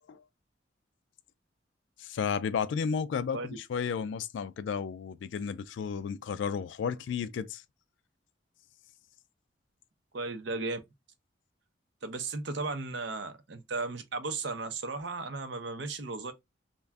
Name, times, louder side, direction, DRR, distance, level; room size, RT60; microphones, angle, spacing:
voice 1, 2.0-7.6, left 6 dB, 75° left, 0.3 m, -33 dB
voice 2, 10.1-10.8 12.0-16.3, right 3 dB, 70° right, 0.6 m, -35 dB
2.4 x 2.2 x 3.3 m
head